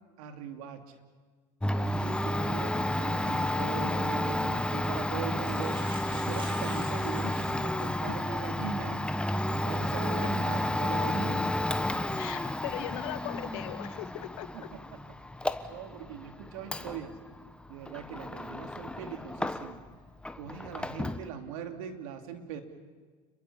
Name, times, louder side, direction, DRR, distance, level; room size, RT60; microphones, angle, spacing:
voice 1, 0.2-1.0 1.7-5.8 6.1-9.0 9.3-11.5 14.5-15.0 15.4-17.2 17.7-19.8 20.4-22.6, right 8 dB, 80° right, 6 dB, 2.9 m, -41 dB
Domestic sounds home sounds, 1.6-19.9 20.2-21.3, left 1 dB, 5° left, 1.2 m, -32 dB
sound 1, 5.3-8.1 8.6-8.7 10.6-10.8 11.4-11.7, right 2 dB, 30° right, 6.0 m, -48 dB
voice 2, 12.2-14.7, left 14 dB, 75° left, 9 dB, 2.0 m, -39 dB
30.0 x 22.5 x 7.2 m, 1.5 s
supercardioid pair, 100°, 18 cm